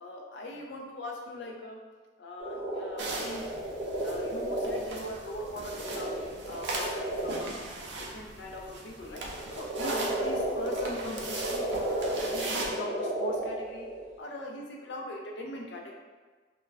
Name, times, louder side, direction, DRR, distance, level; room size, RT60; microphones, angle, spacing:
voice 1, 0.0-1.8 2.2-3.5 4.0-7.6 8.0-13.9 14.2-16.0, left 1 dB, 70° left, 0 dB, 0.4 m, -41 dB
sound 1, 2.4-7.5 9.1-14.1, right 1 dB, 35° right, 0.8 m, -33 dB
sound 2, 3.0-12.7, right 2 dB, 75° right, 0.4 m, -39 dB
2.2 x 2.1 x 3.3 m, 1.4 s
head